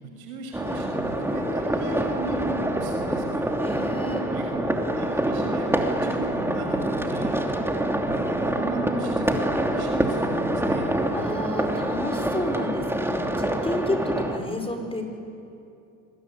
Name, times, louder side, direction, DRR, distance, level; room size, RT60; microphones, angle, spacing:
voice 1, 0.0-3.4 4.3-4.5 4.9-7.6 8.0-10.9, right 3 dB, 90° right, 2 dB, 5.9 m, -35 dB
sound 1, 0.5-14.4, right 1 dB, 5° right, 3.0 m, -26 dB
voice 2, 3.6-4.2 11.1-15.0, left 1 dB, 15° left, 3 dB, 5.4 m, -30 dB
25.5 x 22.0 x 9.9 m, 2.6 s
supercardioid pair, 80°, 42 cm